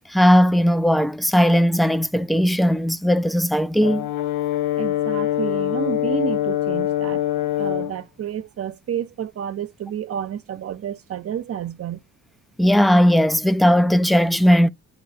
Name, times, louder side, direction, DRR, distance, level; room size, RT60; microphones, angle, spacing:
voice 1, 0.1-4.1 12.6-14.7, equal, ahead, 0.4 m, -17 dB
Brass instrument, 3.8-8.0, left 12 dB, 90° left, 0.8 m, -24 dB
voice 2, 4.8-7.2 7.6-12.0, right 9 dB, 50° right, 0.8 m, -30 dB
8.5 x 3.0 x 4.2 m
cardioid pair, 90°, 30 cm